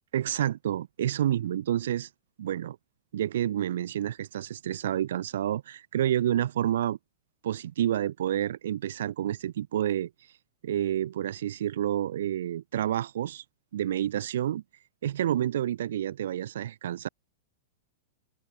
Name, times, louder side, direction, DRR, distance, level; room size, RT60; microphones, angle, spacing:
voice 1, 0.1-2.1 2.4-2.8 3.1-7.0 7.4-10.1 10.6-13.4 13.7-14.6 15.0-17.1, right 11 dB, 75° right, 0.5 m, -29 dB
hypercardioid pair, 135°, 0 cm